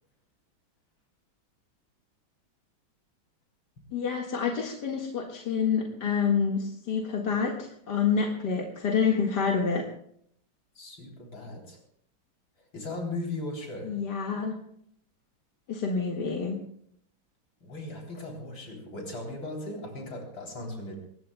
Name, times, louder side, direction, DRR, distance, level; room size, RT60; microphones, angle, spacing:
voice 1, 3.9-9.9 13.8-14.5 15.7-16.6, left 6 dB, 55° left, -1 dB, 2.4 m, -28 dB
voice 2, 10.7-11.8 12.6-14.0 17.6-21.0, left 2 dB, 70° left, -1 dB, 4.2 m, -38 dB
23.0 x 21.0 x 2.3 m, 0.67 s
omnidirectional pair, 2.2 m